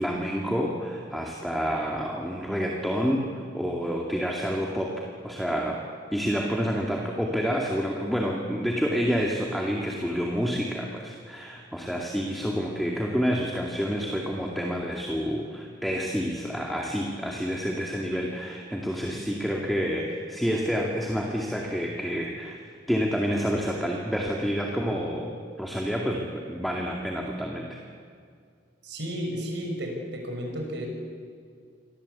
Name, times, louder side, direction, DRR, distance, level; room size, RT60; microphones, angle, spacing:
voice 1, 0.0-3.3 3.5-5.8 6.1-22.6 22.9-25.3 25.6-27.8, equal, ahead, -1 dB, 2.3 m, -28 dB
voice 2, 28.8-30.9, equal, 65° right, 1 dB, 6.5 m, -33 dB
28.5 x 24.0 x 8.4 m, 2.3 s
head